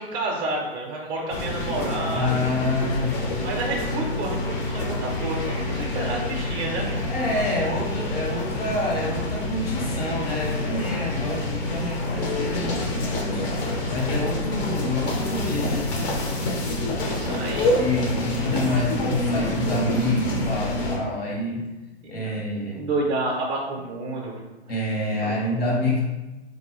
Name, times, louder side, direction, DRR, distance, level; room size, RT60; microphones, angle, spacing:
voice 1, 0.0-2.4 3.4-7.0 17.1-17.9 22.0-22.1 22.7-24.3 25.2-25.4, right 2 dB, 25° right, -1 dB, 0.5 m, -30 dB
sound 1, 1.3-21.0, left 2 dB, 25° left, 0.5 m, -27 dB
voice 2, 2.1-3.2 5.7-6.1 7.1-13.4 13.9-15.9 17.8-21.7 22.1-22.8 24.7-26.0, left 1 dB, 65° left, -2 dB, 1.3 m, -27 dB
3.7 x 2.6 x 2.9 m, 1.1 s
figure-of-eight pair, 110°, 32 cm